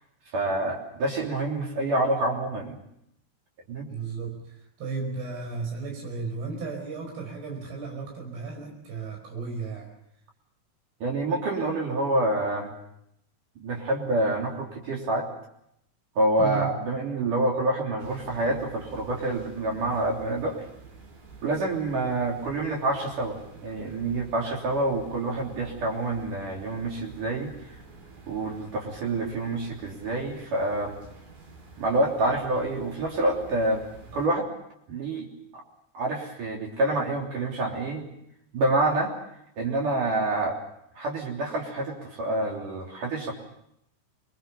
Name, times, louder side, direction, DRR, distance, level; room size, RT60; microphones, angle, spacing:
voice 1, 0.3-2.8 3.7-3.9 11.0-12.7 13.6-15.3 16.2-20.6 21.4-27.5 28.3-31.0 31.8-33.8 34.1-34.5 34.9-35.3 35.5-35.6 35.9-38.1 38.5-39.1 39.6-40.6 41.0-43.3, right 2 dB, 55° right, -1 dB, 4.6 m, -27 dB
voice 2, 3.9-9.9 16.4-16.7, right 4 dB, 90° right, 1 dB, 7.1 m, -34 dB
sound 1, 18.0-34.3, right 4 dB, 75° right, 6.6 m, -48 dB
26.0 x 22.0 x 7.0 m, 0.76 s
omnidirectional pair, 4.6 m